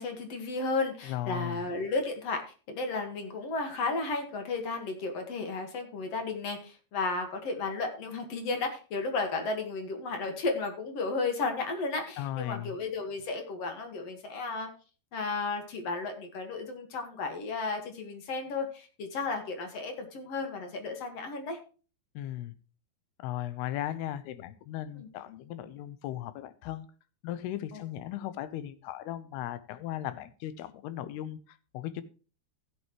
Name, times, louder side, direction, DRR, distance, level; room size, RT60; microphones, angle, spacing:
voice 1, 0.0-2.4 2.7-14.7 15.1-21.6 25.0-25.1 27.7-27.8, left 3 dB, 50° left, 5 dB, 2.1 m, -33 dB
voice 2, 1.0-1.7 12.2-12.8 22.1-22.5 23.2-26.9 27.2-32.0, left 12 dB, 85° left, 13 dB, 2.8 m, -37 dB
15.5 x 8.3 x 3.0 m, 0.35 s
omnidirectional pair, 4.6 m